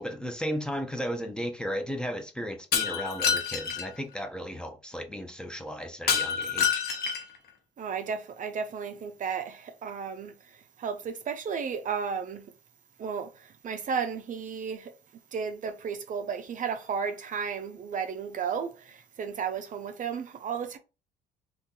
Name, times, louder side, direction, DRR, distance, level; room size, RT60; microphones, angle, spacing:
voice 1, 0.0-6.8, equal, 5° left, 0.6 m, -35 dB
Shatter, 2.7-3.9 6.1-7.4, left 7 dB, 55° left, 0.8 m, -27 dB
voice 2, 7.8-10.3 10.8-12.4 13.0-13.3 13.6-14.9 15.3-20.8, right 6 dB, 45° right, 0.5 m, -33 dB
2.5 x 2.3 x 3.6 m
cardioid pair, 85°, 18 cm